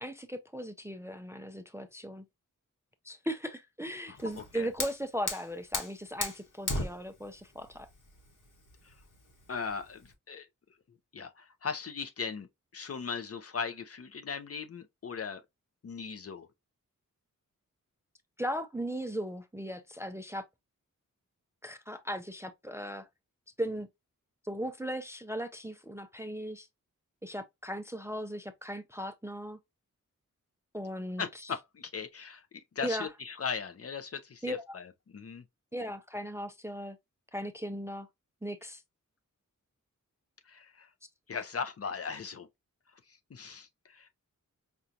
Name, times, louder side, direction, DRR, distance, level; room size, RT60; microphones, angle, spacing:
voice 1, 0.0-2.2 3.0-7.9 18.4-20.4 21.6-23.1 23.6-23.9 24.4-26.7 27.2-29.6 30.7-31.2 32.8-33.1 34.4-34.8 35.7-37.0 37.3-38.1 38.4-38.8, equal, 10° right, 0.4 m, -37 dB
voice 2, 4.1-4.7 8.8-8.9 9.5-10.5 11.1-12.5 12.7-15.4 15.8-16.5 31.2-35.4 40.5-40.9 41.3-42.5 43.1-44.1, left 5 dB, 50° left, 0.5 m, -38 dB
Fire, 4.2-10.1, left 2 dB, 80° left, 1.1 m, -38 dB
5.0 x 2.3 x 2.7 m
wide cardioid pair, 130°, 32 cm